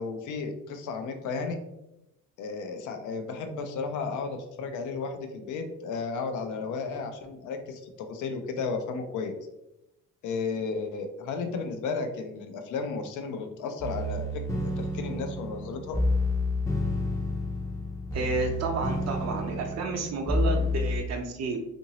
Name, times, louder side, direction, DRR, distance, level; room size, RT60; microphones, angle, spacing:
voice 1, 0.0-1.6 2.4-9.3 10.2-16.0, left 4 dB, 80° left, 6 dB, 0.5 m, -33 dB
sound 1, 13.8-21.0, left 2 dB, 10° left, 0.5 m, -29 dB
voice 2, 18.1-21.6, right 3 dB, 60° right, 3 dB, 0.7 m, -31 dB
2.8 x 2.6 x 2.9 m, 0.88 s
cardioid pair, 90°, 30 cm